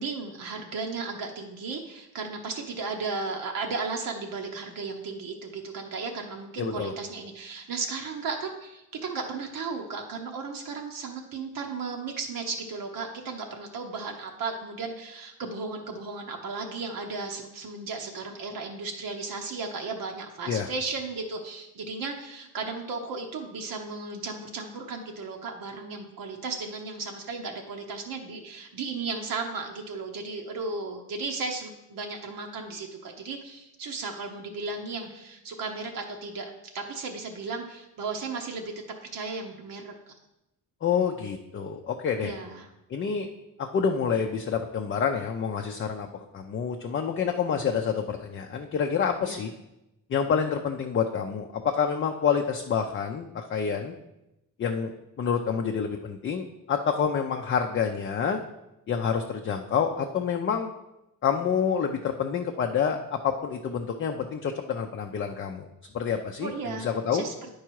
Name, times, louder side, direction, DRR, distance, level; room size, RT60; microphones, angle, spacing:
voice 1, 0.0-38.7 39.0-40.2 42.2-42.7 49.2-49.5 66.4-67.5, right 4 dB, 75° right, 2 dB, 0.9 m, -35 dB
voice 2, 6.6-6.9 20.5-20.7 40.8-42.3 42.9-43.3 43.6-49.5 50.1-53.9 54.6-58.4 58.9-60.7 61.2-65.7 65.9-67.2, left 7 dB, 35° left, 3 dB, 0.4 m, -28 dB
9.9 x 4.7 x 4.6 m, 0.91 s
wide cardioid pair, 175°, 34 cm